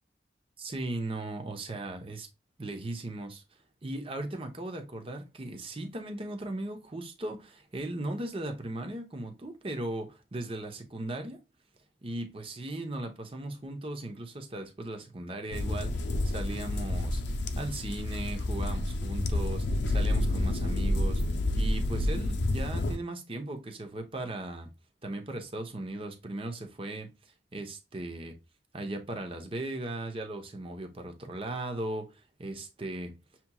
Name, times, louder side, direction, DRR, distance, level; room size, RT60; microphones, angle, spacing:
voice 1, 0.6-2.3 2.6-3.4 3.8-11.4 12.0-24.7 25.0-27.1 27.5-28.3 28.7-33.1, right 2 dB, 30° right, 0.8 m, -37 dB
sound 1, 15.5-23.0, left 1 dB, 80° left, 0.6 m, -29 dB
6.8 x 3.0 x 2.3 m
head